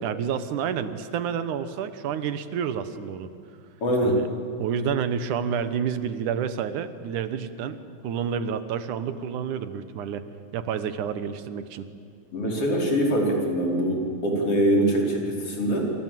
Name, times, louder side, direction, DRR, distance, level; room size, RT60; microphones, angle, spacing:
voice 1, 0.0-3.3 4.0-4.3 4.6-10.3 10.5-11.9, right 7 dB, 80° right, 11 dB, 2.7 m, -29 dB
voice 2, 3.8-4.2 12.3-15.8, right 1 dB, 45° left, -1 dB, 5.8 m, -23 dB
27.5 x 27.0 x 7.6 m, 2.5 s
omnidirectional pair, 3.6 m